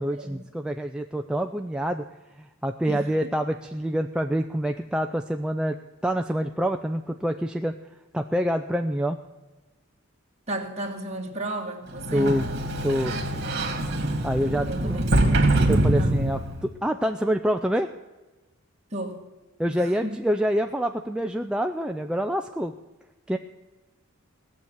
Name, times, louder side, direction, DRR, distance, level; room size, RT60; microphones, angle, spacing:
voice 1, 0.0-2.1 2.4-5.8 6.0-7.8 8.1-9.2 12.1-12.5 12.8-13.2 14.2-15.0 15.7-17.9 19.6-22.7 23.3-23.4, equal, 5° right, 4 dB, 0.4 m, -26 dB
voice 2, 10.5-12.4 14.7-15.2 15.5-16.2 18.9-19.2 19.7-20.2, right 1 dB, 30° right, 1 dB, 2.0 m, -34 dB
Sliding door, 11.9-16.7, right 1 dB, 55° right, 2.1 m, -24 dB
17.5 x 7.2 x 9.4 m, 1.2 s
head